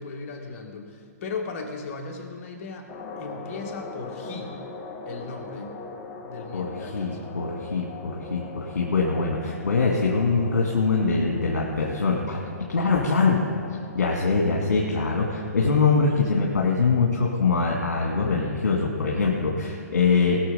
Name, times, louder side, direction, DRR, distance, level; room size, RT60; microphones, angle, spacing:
voice 1, 0.0-2.9 3.2-4.6 5.1-5.7 6.2-7.2, left 4 dB, 50° left, 2 dB, 2.0 m, -37 dB
sound 1, 2.9-14.4, left 3 dB, 25° left, 1.6 m, -41 dB
voice 2, 6.9-12.4 12.7-20.4, left 4 dB, 75° left, -3 dB, 2.1 m, -23 dB
19.5 x 7.0 x 5.5 m, 2.3 s
hypercardioid pair, 125°, 9 cm